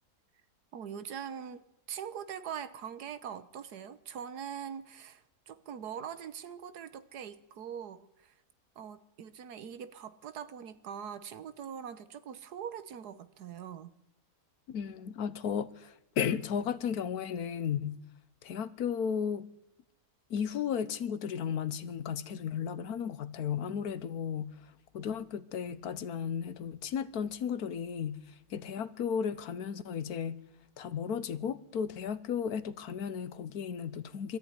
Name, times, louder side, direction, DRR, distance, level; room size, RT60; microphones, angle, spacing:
voice 1, 0.7-8.3 8.8-13.9, right 8 dB, 90° right, 1.6 m, -42 dB
voice 2, 14.7-18.0 18.4-19.5 20.3-30.4 30.8-34.4, left 7 dB, 75° left, 1.5 m, -34 dB
21.5 x 13.5 x 9.7 m
omnidirectional pair, 1.6 m